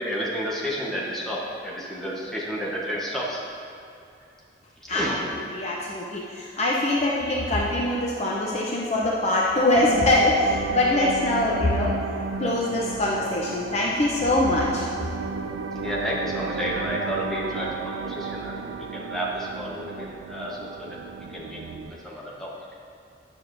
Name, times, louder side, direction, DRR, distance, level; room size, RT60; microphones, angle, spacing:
voice 1, 0.0-3.4 4.8-5.3 15.8-21.0 21.3-21.6 21.9-22.5, equal, ahead, -6 dB, 1.0 m, -31 dB
voice 2, 5.5-12.0 12.4-14.9, left 1 dB, 35° left, -4 dB, 0.6 m, -23 dB
sound 1, 9.7-21.9, right 4 dB, 85° right, 0.4 m, -33 dB
9.6 x 6.3 x 2.6 m, 2.6 s
head